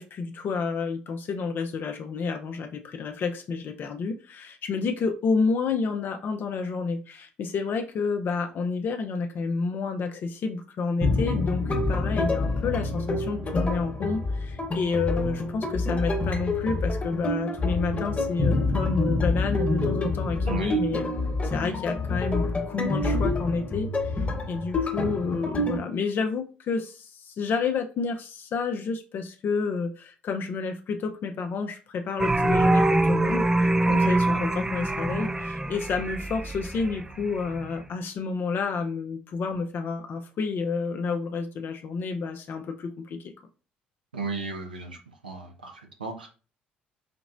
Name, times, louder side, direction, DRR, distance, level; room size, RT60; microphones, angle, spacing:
voice 1, 0.0-21.1 21.4-43.2, left 4 dB, 45° left, 5 dB, 0.5 m, -30 dB
sound 1, 11.0-25.8, left 2 dB, 30° left, 1.2 m, -27 dB
voice 2, 20.4-20.8 33.9-34.4 44.1-45.0 45.2-46.3, right 4 dB, 90° right, 2 dB, 0.7 m, -35 dB
sound 2, 32.2-37.7, right 2 dB, 15° right, 0.4 m, -24 dB
5.1 x 2.9 x 2.5 m, 0.35 s
figure-of-eight pair, 50°, 5 cm